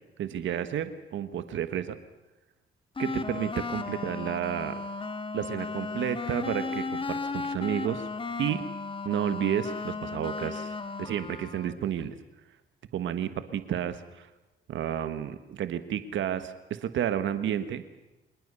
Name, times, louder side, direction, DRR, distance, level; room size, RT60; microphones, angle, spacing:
voice 1, 0.2-2.0 3.0-4.8 5.3-8.1 8.4-8.6 9.0-12.2 12.9-14.3 14.7-17.8, right 10 dB, 70° right, 10 dB, 1.5 m, -31 dB
sound 1, 3.0-11.8, left 4 dB, 25° left, 1.7 m, -35 dB
26.0 x 20.0 x 6.9 m, 1.0 s
cardioid pair, 90°, 20 cm